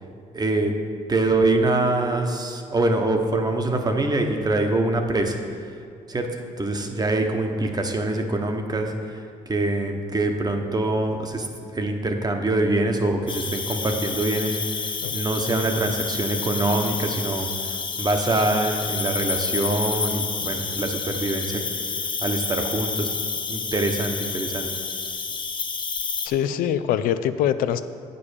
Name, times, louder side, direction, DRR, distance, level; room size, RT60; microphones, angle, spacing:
voice 1, 0.3-0.7 1.1-5.4 6.1-6.3 6.6-9.2 9.5-11.5 11.7-21.6 22.2-23.1 23.5-24.7, right 2 dB, 25° right, 4 dB, 1.1 m, -24 dB
Cricket, 13.3-26.3, left 5 dB, 35° left, 0.8 m, -29 dB
voice 2, 26.2-27.8, left 10 dB, 80° left, 11 dB, 0.4 m, -23 dB
8.5 x 5.2 x 6.5 m, 2.5 s
supercardioid pair, 75°, 14 cm